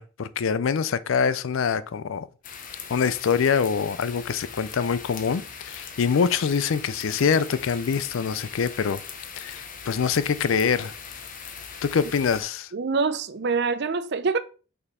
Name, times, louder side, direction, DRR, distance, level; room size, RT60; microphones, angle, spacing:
voice 1, 0.0-2.3 2.9-9.0 9.4-10.9 11.8-12.7, left 6 dB, 70° left, 0.4 m, -24 dB
sound 1, 2.4-12.4, left 6 dB, 40° left, 0.8 m, -40 dB
voice 2, 12.7-14.4, right 4 dB, 55° right, 0.5 m, -25 dB
5.5 x 4.2 x 4.2 m
head